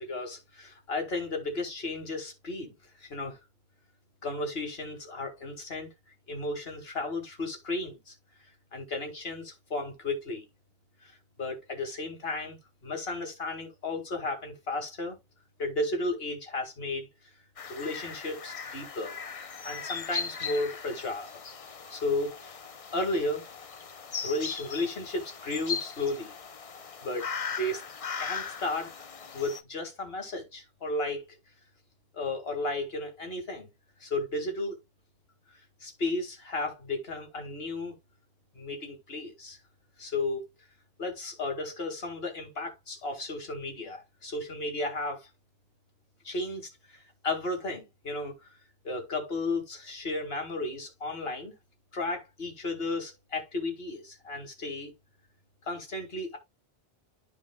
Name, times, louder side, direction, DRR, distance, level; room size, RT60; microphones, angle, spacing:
voice 1, 0.0-2.7 3.0-3.4 4.2-5.9 6.3-8.1 8.7-10.4 11.0-15.2 15.6-17.1 17.7-19.2 19.6-21.4 21.9-22.7 22.9-23.5 24.2-26.3 27.0-27.3 27.6-27.8 28.2-28.9 29.3-31.3 32.1-33.7 34.0-34.8 35.5-37.9 38.5-39.6 40.0-40.5 41.0-45.3 46.2-48.6 48.8-51.5 51.9-54.9 55.6-56.4, left 2 dB, 70° left, 2.2 m, -34 dB
sound 1, 17.6-29.6, left 6 dB, 40° left, 0.6 m, -39 dB
12.0 x 4.6 x 2.2 m
omnidirectional pair, 1.1 m